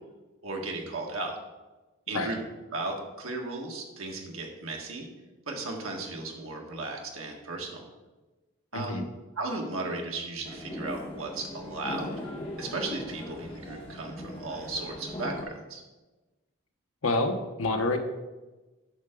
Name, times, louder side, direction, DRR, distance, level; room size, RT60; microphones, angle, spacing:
voice 1, 0.4-1.4 2.1-2.4 2.7-5.1 5.5-7.8 8.7-9.0 9.4-12.2 12.6-15.8, right 2 dB, 80° right, 1 dB, 1.6 m, -35 dB
voice 2, 8.7-9.0 17.0-18.0, left 2 dB, 80° left, 5 dB, 1.0 m, -28 dB
sound 1, 10.4-15.4, left 1 dB, 25° left, 1.4 m, -39 dB
9.0 x 6.7 x 3.8 m, 1.1 s
head